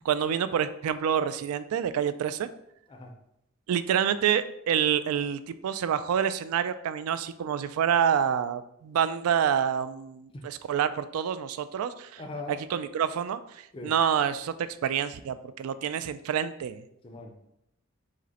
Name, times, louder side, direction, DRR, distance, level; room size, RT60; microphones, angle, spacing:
voice 1, 0.0-2.5 3.7-12.2 12.7-16.8, right 8 dB, 90° right, 15 dB, 0.3 m, -27 dB
voice 2, 12.2-12.6 13.7-13.9 17.0-17.5, left 2 dB, 25° left, 3 dB, 0.4 m, -40 dB
5.0 x 2.1 x 4.0 m, 0.79 s
head